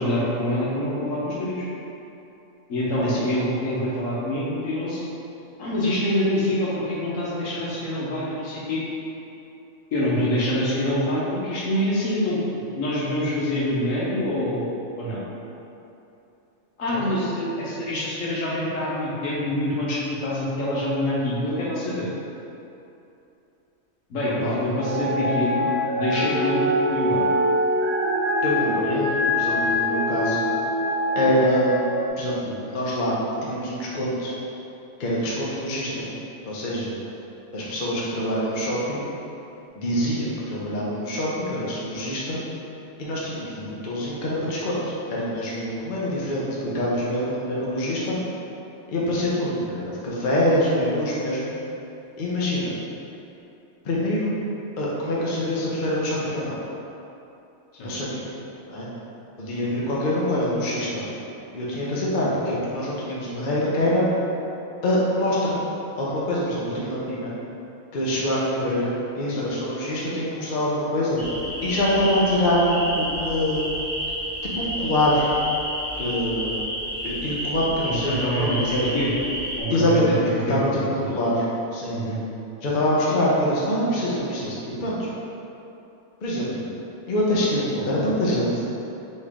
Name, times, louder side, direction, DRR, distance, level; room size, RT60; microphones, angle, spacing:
voice 1, 0.0-1.7 2.7-5.0 5.6-8.8 9.9-12.4 12.7-15.2 16.8-22.1 24.1-25.7 26.0-27.3 57.7-57.9 77.8-78.6 78.9-79.2 79.6-80.1 80.5-80.9 81.9-82.2, left 1 dB, 75° left, -7 dB, 1.3 m, -25 dB
sound 1, 24.8-32.1, left 1 dB, 60° right, 0.8 m, -24 dB
voice 2, 28.4-30.5 31.2-31.8 32.2-34.3 35.0-36.1 36.4-36.9 37.5-39.1 39.8-42.4 43.0-48.2 48.9-51.5 52.2-52.7 53.8-54.3 54.8-56.6 57.8-58.3 58.7-58.9 59.4-61.0 61.5-64.1 64.8-65.5 65.9-67.3 67.9-71.2 71.6-73.8 74.5-75.3 76.0-76.5 77.0-78.9 79.7-80.2 80.5-81.5 81.7-82.0 82.6-85.1 86.2-86.5 87.1-88.5, equal, 45° left, -6 dB, 0.8 m, -25 dB
sound 2, 71.2-79.6, equal, 20° left, 1.3 m, -31 dB
4.4 x 3.1 x 3.5 m, 2.9 s
omnidirectional pair, 1.4 m